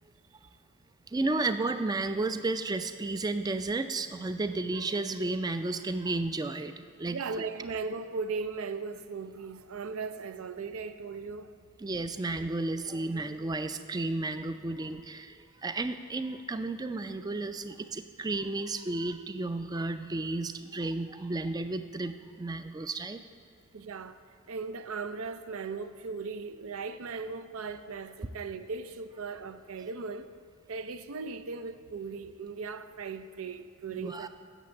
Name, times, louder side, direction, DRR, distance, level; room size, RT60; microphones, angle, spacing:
voice 1, 1.1-7.2 11.8-23.2 33.9-34.3, right 2 dB, 20° right, 0.4 m, -33 dB
voice 2, 7.1-11.6 23.7-24.2 24.5-30.3 30.7-34.3, right 4 dB, 80° right, 0.5 m, -38 dB
9.1 x 7.0 x 7.6 m
head